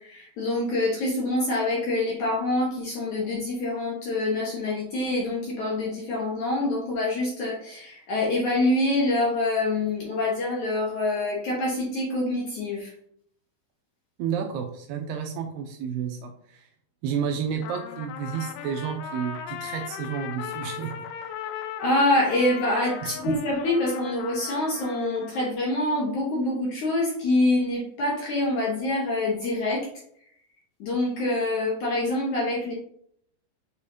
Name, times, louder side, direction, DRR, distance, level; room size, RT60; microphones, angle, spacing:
voice 1, 0.0-12.9 21.8-29.9 30.8-32.7, left 2 dB, 60° left, -4 dB, 2.1 m, -26 dB
voice 2, 14.2-16.7 17.0-21.0 23.0-23.4, right 7 dB, 80° right, 4 dB, 2.5 m, -31 dB
Trumpet, 17.6-25.5, left 9 dB, 80° left, 2.7 m, -38 dB
7.2 x 5.2 x 2.8 m, 0.65 s
omnidirectional pair, 5.0 m